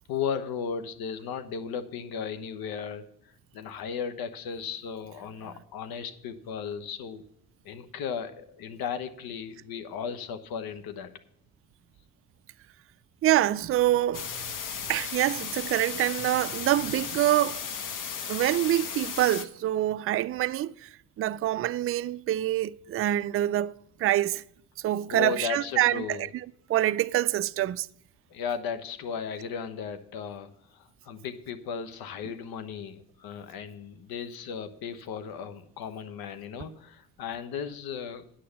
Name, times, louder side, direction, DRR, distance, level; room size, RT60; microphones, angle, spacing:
voice 1, 0.1-3.1 3.5-7.2 7.6-11.1 25.1-26.3 28.3-38.2, left 7 dB, 75° left, 1.1 m, -35 dB
voice 2, 13.2-14.3 14.9-17.6 18.3-24.4 24.8-26.3 26.7-27.9, right 13 dB, 40° right, 0.4 m, -26 dB
sound 1, 14.1-19.4, left 7 dB, 60° left, 1.1 m, -35 dB
9.4 x 6.7 x 7.0 m
supercardioid pair, 70°, 37 cm